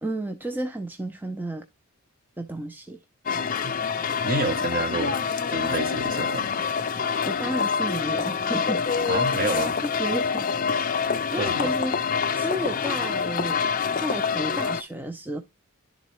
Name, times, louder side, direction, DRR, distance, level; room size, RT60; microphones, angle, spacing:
voice 1, 0.0-1.6 2.4-3.0 6.8-8.8 9.2-9.4 9.8-10.5 11.3-12.0 12.4-13.6 14.0-15.4, right 1 dB, 10° right, 0.5 m, -32 dB
sound 1, 3.3-14.8, left 6 dB, 40° left, 0.5 m, -26 dB
voice 2, 4.2-6.5 9.1-9.8 11.4-11.7, right 2 dB, 40° right, 1.0 m, -29 dB
11.0 x 3.9 x 3.1 m
head